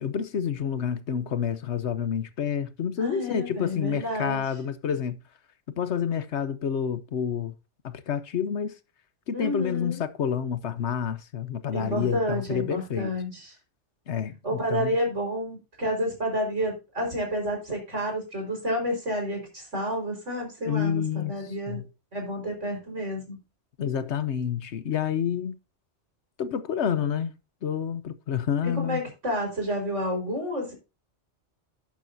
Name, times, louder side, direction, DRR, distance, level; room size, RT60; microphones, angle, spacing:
voice 1, 0.0-5.2 5.8-7.5 7.8-8.7 9.3-13.1 14.1-14.9 20.7-21.8 23.8-25.5 26.4-27.3 27.6-29.0, left 8 dB, 70° left, 1.1 m, -29 dB
voice 2, 3.0-4.4 9.3-10.0 11.7-13.5 14.4-21.8 22.1-23.4 28.6-30.7, equal, 90° right, 5.2 m, -30 dB
11.5 x 10.0 x 2.7 m
omnidirectional pair, 1.2 m